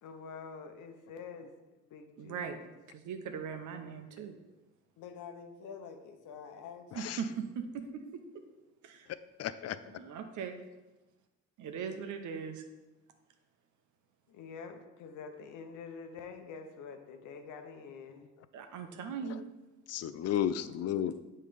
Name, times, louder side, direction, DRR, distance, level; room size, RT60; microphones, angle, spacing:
voice 1, 0.0-1.5 1.9-2.6 5.0-7.2 14.3-18.3, left 5 dB, 80° left, 6 dB, 0.9 m, -47 dB
voice 2, 2.2-2.6 2.9-4.4 6.9-7.8 8.8-9.1 9.9-10.6 11.6-12.6 18.5-19.5, right 6 dB, 75° right, 6 dB, 0.8 m, -39 dB
voice 3, 9.4-10.0 19.9-21.2, left 10 dB, 55° left, 14 dB, 0.4 m, -33 dB
7.5 x 3.3 x 5.1 m, 1.1 s
cardioid pair, 90°, 30 cm